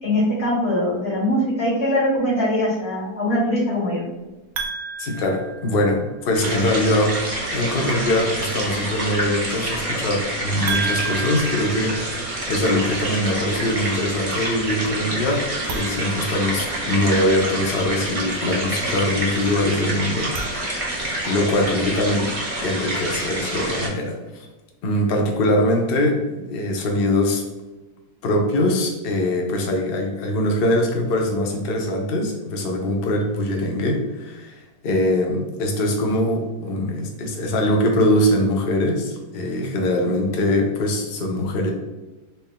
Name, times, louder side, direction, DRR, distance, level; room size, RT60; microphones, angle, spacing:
voice 1, 0.0-4.0, left 1 dB, 40° left, -6 dB, 1.7 m, -22 dB
sound 1, 4.5-6.2 10.7-12.7 15.6-17.2 20.1-21.3, right 4 dB, 70° right, 0.8 m, -33 dB
voice 2, 5.0-7.2 7.5-20.9 21.2-22.3 22.6-24.5 24.8-27.4 28.2-41.7, left 1 dB, 80° left, 1 dB, 0.5 m, -22 dB
sound 2, 6.3-23.9, right 1 dB, 35° right, 0.6 m, -27 dB
4.2 x 2.2 x 3.7 m, 1.1 s
omnidirectional pair, 1.7 m